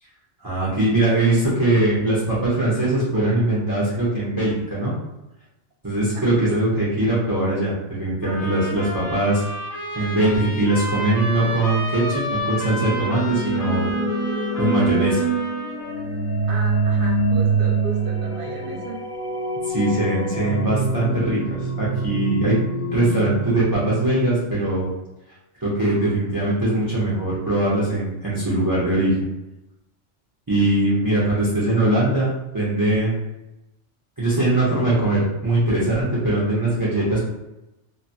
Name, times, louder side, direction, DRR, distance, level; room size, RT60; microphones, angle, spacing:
voice 1, 0.4-4.9 5.8-9.4 9.9-14.0 14.6-15.3 19.6-22.6 22.9-24.9 25.6-29.2 30.5-33.2 34.2-37.2, right 1 dB, 25° right, -8 dB, 0.5 m, -21 dB
sound 1, 8.2-16.0, left 1 dB, 80° left, 1.0 m, -31 dB
sound 2, 12.7-24.6, right 3 dB, 60° left, 0.5 m, -25 dB
voice 2, 16.5-19.0, right 2 dB, 50° right, -2 dB, 0.8 m, -34 dB
3.0 x 2.2 x 2.6 m, 0.94 s
omnidirectional pair, 1.3 m